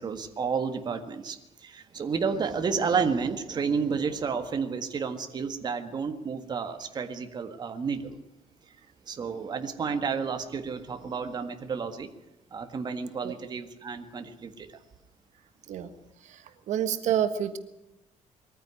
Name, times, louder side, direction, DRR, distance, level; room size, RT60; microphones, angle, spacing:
voice 1, 0.0-8.2 9.1-12.1 12.5-14.7, right 5 dB, 35° right, 7 dB, 1.7 m, -31 dB
voice 2, 16.2-17.6, right 9 dB, 70° right, 9 dB, 1.5 m, -29 dB
22.0 x 14.5 x 9.7 m, 0.90 s
cardioid pair, 160°, 13 cm